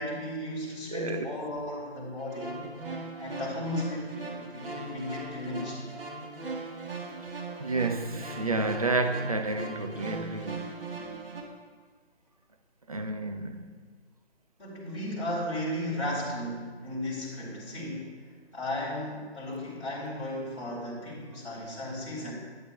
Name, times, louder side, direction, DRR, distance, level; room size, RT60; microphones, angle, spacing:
voice 1, 0.0-2.6 3.2-5.9 10.9-11.3 14.6-22.3, left 1 dB, 15° left, 2.3 m, -35 dB
voice 2, 0.9-1.3 7.2-10.8 12.9-13.8, right 2 dB, 35° right, 0.4 m, -31 dB
sound 1, 2.2-11.4, right 3 dB, 55° right, 1.5 m, -39 dB
11.5 x 9.0 x 2.3 m
figure-of-eight pair, 145°, 34 cm